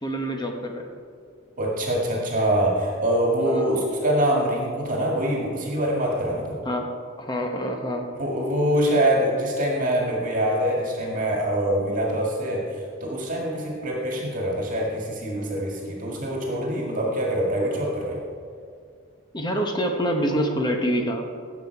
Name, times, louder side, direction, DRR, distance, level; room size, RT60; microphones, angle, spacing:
voice 1, 0.0-0.9 3.4-3.9 6.6-6.9 7.2-8.1 19.3-21.2, equal, 20° left, 3 dB, 1.0 m, -26 dB
voice 2, 1.6-6.6 8.2-18.2, right 1 dB, 40° right, -2 dB, 1.9 m, -24 dB
16.5 x 7.2 x 4.7 m, 2.2 s
head